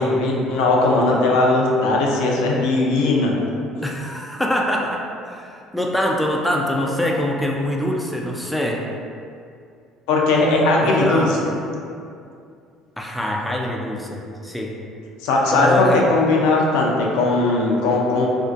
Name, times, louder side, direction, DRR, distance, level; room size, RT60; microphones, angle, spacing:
voice 1, 0.0-3.3 10.1-11.5 15.2-18.3, left 2 dB, 80° left, -1 dB, 0.4 m, -18 dB
voice 2, 3.8-8.8 10.8-11.4 13.0-14.7 15.5-16.1, left 1 dB, 5° left, -1 dB, 0.3 m, -24 dB
2.5 x 2.1 x 2.4 m, 2.4 s
supercardioid pair, 75°, 0 cm